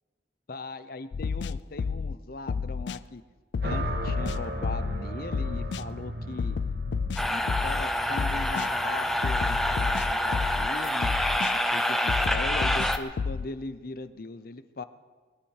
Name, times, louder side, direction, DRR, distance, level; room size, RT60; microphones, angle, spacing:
voice 1, 0.5-3.2 3.6-6.6 7.3-11.1 11.5-14.8, left 3 dB, 55° left, 12 dB, 0.8 m, -39 dB
sound 1, 1.1-2.2 2.5-3.0 3.5-5.0 5.3-5.8 6.4-7.8 8.2-8.7 9.2-10.7 11.0-11.5 12.1-13.5, left 5 dB, 75° left, 0.4 m, -30 dB
sound 2, 3.6-11.9, right 1 dB, 65° right, 1.5 m, -38 dB
sound 3, 7.2-13.0, left 1 dB, ahead, 0.8 m, -27 dB
21.5 x 11.5 x 4.8 m, 1.4 s
head